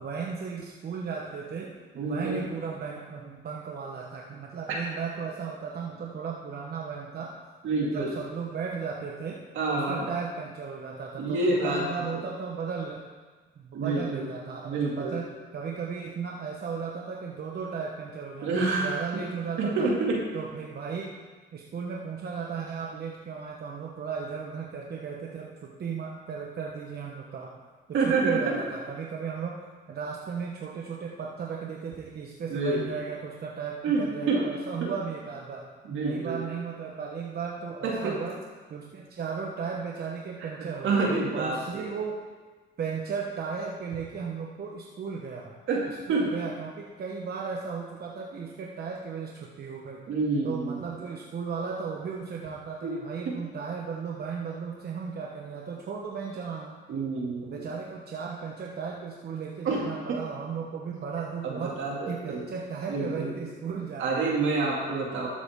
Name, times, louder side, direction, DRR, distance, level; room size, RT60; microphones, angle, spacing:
voice 1, 0.0-7.4 7.8-13.1 13.6-19.9 20.3-21.1 21.5-27.6 27.9-35.7 36.0-38.4 38.7-41.0 41.3-42.3 42.8-45.5 46.1-50.1 50.4-56.8 57.4-61.8 62.1-64.4 65.1-65.3, right 6 dB, 55° right, -1 dB, 1.1 m, -35 dB
voice 2, 2.0-2.4 4.7-4.8 7.6-8.1 9.6-10.0 11.2-11.9 12.1-12.3 13.7-14.3 14.7-15.2 18.4-18.9 19.6-20.2 27.9-28.6 32.5-32.9 33.8-34.5 34.8-34.9 35.8-36.4 37.8-38.2 40.4-40.5 40.8-41.9 45.7-46.3 50.1-50.8 52.8-52.9 53.3-53.4 56.9-57.7 59.6-60.2 61.4-62.4 62.9-63.3 64.0-65.3, right 3 dB, 80° right, -2 dB, 2.5 m, -28 dB
12.5 x 8.4 x 3.7 m, 1.4 s
cardioid pair, 90°, 20 cm